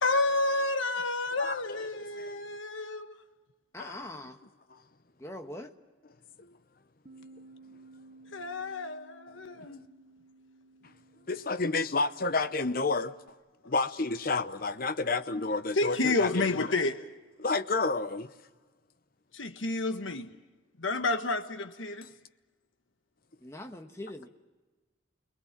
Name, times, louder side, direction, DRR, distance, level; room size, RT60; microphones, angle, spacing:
voice 1, 0.0-3.2 8.3-9.8 15.8-17.0 19.3-20.4 20.8-22.1, left 2 dB, 75° left, 1.3 m, -30 dB
voice 2, 1.3-2.4 3.8-4.1 4.7-4.8 6.4-6.6 9.6-9.7 10.8-10.9 11.3-13.2 13.6-16.7 17.4-18.3, left 3 dB, 45° left, 0.7 m, -31 dB
voice 3, 3.7-4.4 5.2-5.7 23.4-24.3, left 1 dB, 15° left, 1.3 m, -42 dB
Bass guitar, 7.1-13.3, right 3 dB, 35° right, 1.0 m, -56 dB
30.0 x 20.5 x 7.3 m
head